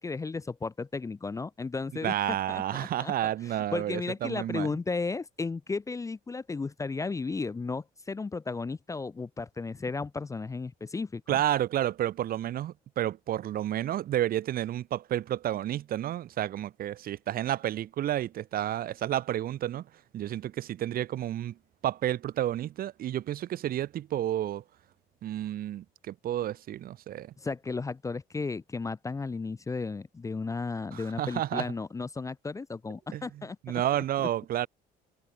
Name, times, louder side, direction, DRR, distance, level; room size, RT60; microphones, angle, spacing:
voice 1, 0.0-2.1 2.5-11.4 27.4-33.8 34.2-34.3, left 4 dB, 20° left, 0.7 m, -34 dB
voice 2, 2.0-4.7 11.3-19.9 20.1-21.6 21.8-24.6 25.2-27.3 30.9-31.7 33.1-34.7, right 12 dB, 60° right, 1.5 m, -31 dB
cardioid pair, 110°, 17 cm